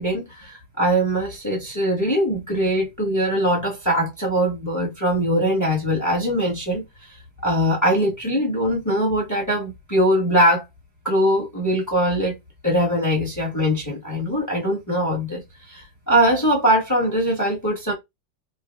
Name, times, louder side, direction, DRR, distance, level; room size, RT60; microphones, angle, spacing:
voice 1, 0.0-7.1 7.4-10.6 11.0-12.3 12.6-15.4 15.7-17.9, equal, 15° left, 0.6 m, -21 dB
4.6 x 2.4 x 2.2 m
omnidirectional pair, 2.4 m